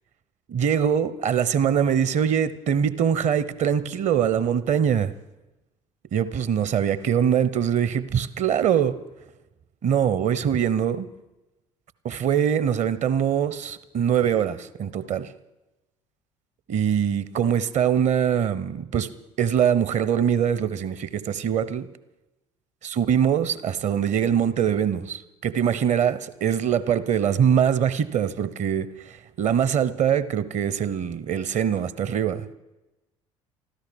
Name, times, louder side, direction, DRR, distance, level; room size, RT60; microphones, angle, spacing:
voice 1, 0.5-5.1 6.1-8.9 9.8-11.1 12.0-15.3 16.7-19.1 19.4-21.9 22.8-32.5, right 8 dB, 45° right, 16 dB, 0.9 m, -23 dB
14.5 x 13.0 x 6.3 m, 1.0 s
figure-of-eight pair, 55°, 17 cm